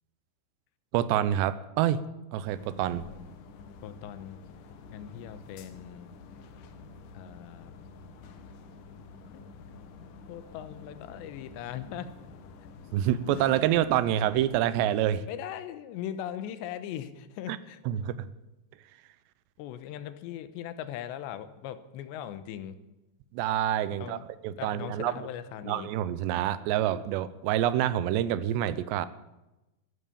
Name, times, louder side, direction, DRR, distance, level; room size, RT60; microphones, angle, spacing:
voice 1, 0.9-2.0 2.3-3.0 12.9-15.2 17.5-17.6 17.9-18.3 23.3-24.2 24.4-25.1 25.7-29.1, right 11 dB, 85° right, 15 dB, 2.8 m, -27 dB
sound 1, 2.5-14.6, left 4 dB, 70° left, 2.1 m, -49 dB
voice 2, 3.8-4.4 4.9-6.2 7.1-7.7 9.3-9.5 9.7-9.8 10.3-12.1 15.3-17.8 19.6-22.8 24.0-24.3 24.6-25.9, left 10 dB, 90° left, 11 dB, 3.2 m, -39 dB
14.5 x 12.5 x 7.1 m, 0.99 s
omnidirectional pair, 4.9 m